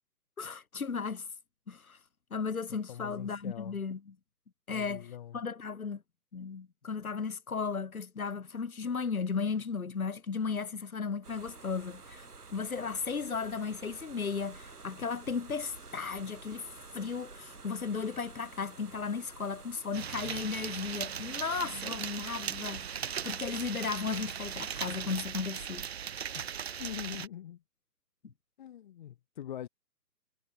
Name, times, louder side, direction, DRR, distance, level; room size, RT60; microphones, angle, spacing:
voice 1, 0.4-1.3 1.7-2.0 2.3-4.0 4.7-5.1 5.3-6.0 6.3-12.3 12.5-16.7 16.9-25.8, left 5 dB, 55° left, 4.4 m, -35 dB
voice 2, 2.9-3.8 4.7-5.4 26.4-26.5 26.8-27.6 28.6-29.7, left 11 dB, 30° left, 2.1 m, -43 dB
sound 1, 11.2-25.1, right 4 dB, 65° right, 6.8 m, -51 dB
sound 2, 19.9-27.3, right 8 dB, 40° right, 2.3 m, -38 dB
figure-of-eight pair, 140°, 49 cm